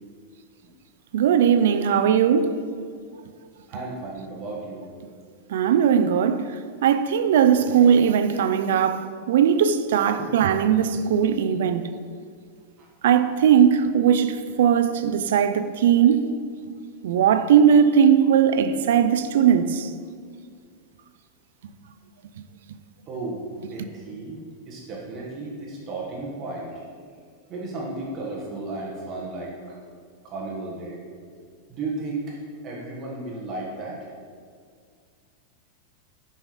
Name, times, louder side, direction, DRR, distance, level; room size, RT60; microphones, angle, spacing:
voice 1, 1.1-2.6 5.5-6.5 6.8-11.9 13.0-16.3 17.0-19.9, right 8 dB, 70° right, 0.5 m, -19 dB
voice 2, 3.7-4.8 10.2-10.3 12.8-12.9 23.1-23.4 23.7-26.8 27.5-29.8 30.2-31.0 31.7-32.4 32.6-34.0, right 2 dB, 25° right, 1.4 m, -34 dB
10.0 x 5.6 x 4.9 m
supercardioid pair, 175°, 0 cm